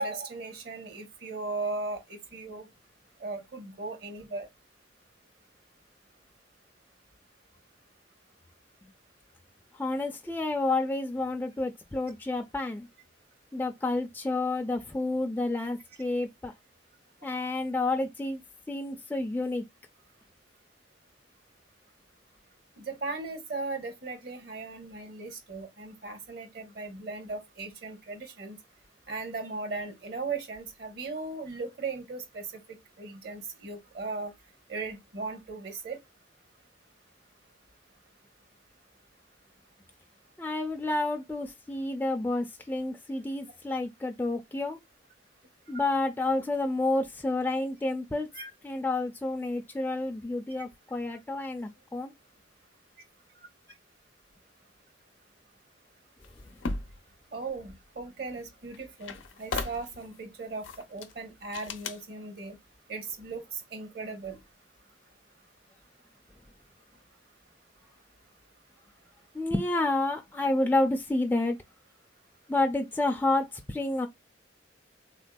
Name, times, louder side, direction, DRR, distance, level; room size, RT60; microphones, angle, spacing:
voice 1, 0.0-2.7 3.2-4.5 22.8-28.6 29.1-32.5 33.0-34.3 34.7-36.0 48.3-48.5 50.6-50.7 57.3-62.6 62.9-64.4, right 3 dB, 55° right, 0.8 m, -37 dB
voice 2, 9.7-12.9 13.5-16.5 17.2-18.4 18.7-19.6 40.4-44.8 45.7-48.3 48.6-52.1 69.3-71.6 72.5-74.1, left 2 dB, 10° left, 0.3 m, -29 dB
sound 1, 56.2-57.0 58.4-58.5 58.7-60.1 60.6-61.1 61.5-62.0, left 3 dB, 85° left, 0.5 m, -36 dB
3.5 x 2.5 x 2.2 m
head